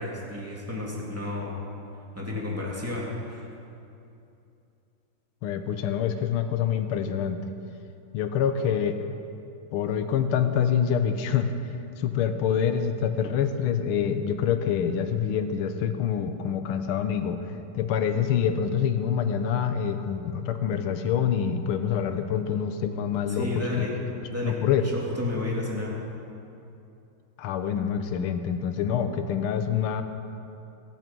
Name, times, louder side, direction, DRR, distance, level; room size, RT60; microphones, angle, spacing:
voice 1, 0.0-1.7 2.1-3.5 23.3-24.0 24.3-25.9, left 2 dB, 5° right, -4 dB, 2.7 m, -31 dB
voice 2, 5.4-7.4 8.1-9.0 9.7-11.5 12.0-17.4 17.8-23.9 24.4-24.9 27.4-30.0, left 8 dB, 80° left, 8 dB, 1.7 m, -26 dB
25.0 x 9.1 x 6.1 m, 2.7 s
omnidirectional pair, 2.4 m